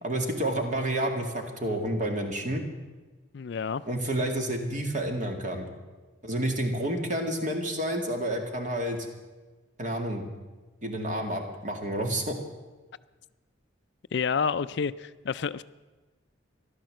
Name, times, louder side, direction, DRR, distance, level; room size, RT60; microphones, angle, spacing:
voice 1, 0.0-2.6 3.9-5.7 6.2-9.0 9.8-10.2 10.8-12.4, right 1 dB, 40° right, 3 dB, 2.2 m, -29 dB
voice 2, 3.3-3.8 14.1-15.6, left 6 dB, 60° left, 15 dB, 0.4 m, -29 dB
15.0 x 12.0 x 7.7 m, 1.2 s
head